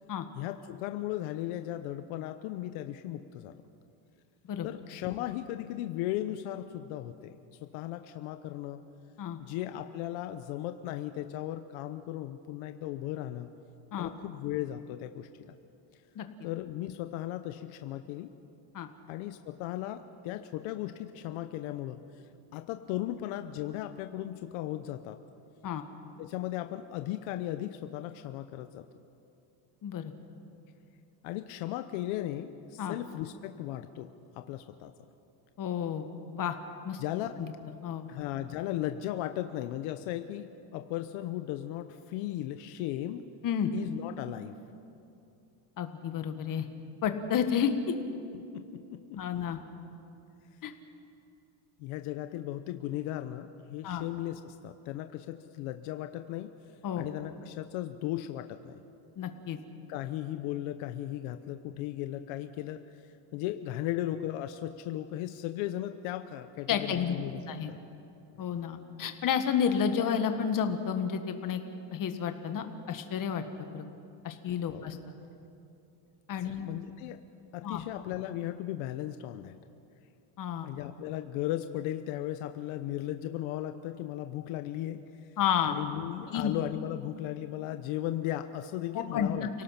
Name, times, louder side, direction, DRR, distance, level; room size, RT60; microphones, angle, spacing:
voice 1, 0.3-3.5 4.6-8.8 9.4-13.5 14.0-15.6 16.4-18.3 19.1-22.2 22.5-25.2 26.2-28.9 31.2-34.9 37.0-37.4 38.1-43.3 43.7-44.6 48.3-49.4 51.8-56.5 56.9-58.8 59.9-63.0 63.3-67.4 67.7-67.8 68.3-68.4 74.7-74.9 76.4-77.2 77.5-79.6 80.6-85.3 85.6-89.5, left 13 dB, 75° left, 8 dB, 1.0 m, -36 dB
voice 2, 29.8-30.1 32.8-32.9 35.6-36.1 36.3-36.6 36.8-37.0 37.8-38.1 43.4-43.7 45.8-46.7 47.0-47.9 49.1-49.6 50.6-50.7 53.8-54.0 56.8-57.1 59.2-59.6 66.7-67.2 67.5-67.7 68.4-71.6 71.9-73.4 73.7-73.9 74.2-75.0 76.3-76.6 77.6-77.8 80.4-80.7 85.4-85.7 86.3-86.5 88.9-89.5, left 8 dB, 40° left, 7 dB, 1.7 m, -31 dB
30.0 x 17.5 x 5.9 m, 2.7 s
cardioid pair, 145°, 49 cm